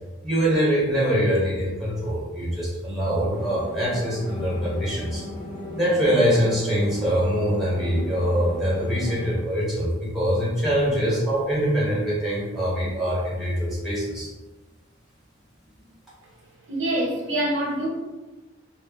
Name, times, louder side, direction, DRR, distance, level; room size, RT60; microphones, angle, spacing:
voice 1, 0.2-5.2 5.7-14.3, equal, ahead, -7 dB, 1.3 m, -23 dB
sound 1, 3.3-9.4, left 2 dB, 50° left, 1.1 m, -36 dB
voice 2, 16.7-17.9, right 1 dB, 75° right, -1 dB, 0.8 m, -25 dB
4.1 x 2.1 x 3.5 m, 1.1 s
head